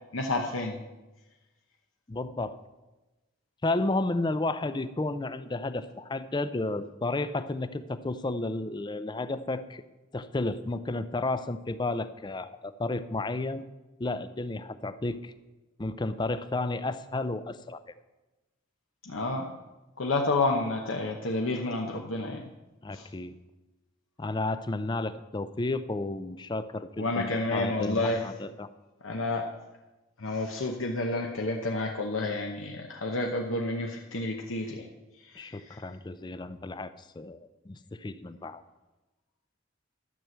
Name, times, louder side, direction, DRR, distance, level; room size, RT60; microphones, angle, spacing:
voice 1, 0.1-0.8 19.0-19.5 20.0-22.5 22.9-23.1 27.0-28.3 29.0-29.5 30.2-34.9 35.2-35.8, left 2 dB, 75° left, 1 dB, 1.0 m, -30 dB
voice 2, 2.1-2.6 3.6-9.8 10.1-13.7 14.0-15.3 15.8-17.8 22.8-23.4 24.2-28.7 35.4-38.6, left 2 dB, 20° left, 13 dB, 0.5 m, -32 dB
12.5 x 6.0 x 7.8 m, 1.1 s
head